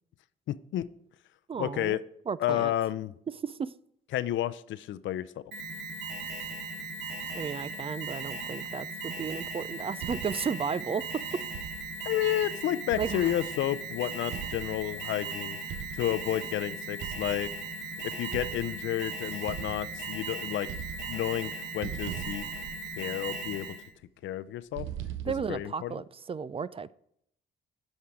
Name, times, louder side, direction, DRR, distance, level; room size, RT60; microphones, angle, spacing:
voice 1, 0.5-0.9 1.6-2.0 2.4-3.1 4.1-5.3 12.0-15.6 15.9-17.5 18.0-20.7 21.1-22.7 23.0-23.8 24.2-24.9 25.3-26.0, left 12 dB, 70° left, 15 dB, 0.5 m, -31 dB
voice 2, 1.5-2.0 2.3-2.7 3.4-3.7 7.3-11.0 13.0-13.3 25.2-26.9, right 6 dB, 30° right, 18 dB, 0.4 m, -34 dB
Alarm, 5.5-23.9, right 3 dB, 60° right, 2.4 m, -38 dB
sound 1, 10.0-10.6 11.5-12.1 12.9-13.7 14.3-15.1 15.7-16.3 17.0-17.8 18.3-19.0 19.5-20.3 20.6-21.5 21.8-23.3 24.7-25.7, right 10 dB, 80° right, 0.7 m, -41 dB
10.5 x 5.6 x 4.9 m, 0.72 s
cardioid pair, 90°, 20 cm